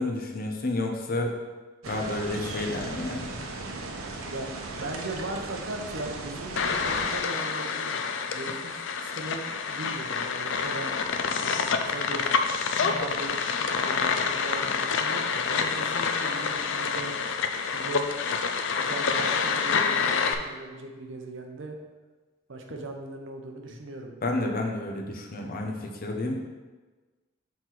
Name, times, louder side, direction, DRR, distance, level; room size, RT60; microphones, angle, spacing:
voice 1, 0.0-1.4 1.9-3.3 24.2-26.4, left 2 dB, 45° left, 2 dB, 0.8 m, -30 dB
sound 1, 1.8-7.2, right 3 dB, 90° right, 0.8 m, -37 dB
voice 2, 4.3-10.9 11.4-12.3 12.9-17.1 17.7-18.2 18.8-21.7 22.5-24.1, right 2 dB, 65° right, 3 dB, 0.8 m, -39 dB
sound 2, 6.6-20.3, left 5 dB, 60° left, 0.5 m, -27 dB
5.9 x 4.4 x 4.6 m, 1.3 s
head